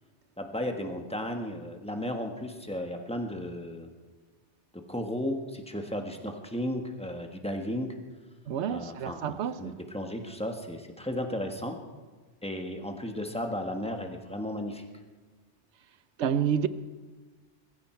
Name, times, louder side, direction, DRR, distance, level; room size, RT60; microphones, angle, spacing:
voice 1, 0.4-3.9 4.7-7.9 8.7-11.8 12.4-14.9, left 1 dB, 5° left, 1.4 m, -34 dB
voice 2, 8.5-9.7 16.2-16.7, right 8 dB, 80° right, 1.0 m, -29 dB
21.5 x 14.5 x 4.5 m
omnidirectional pair, 1.2 m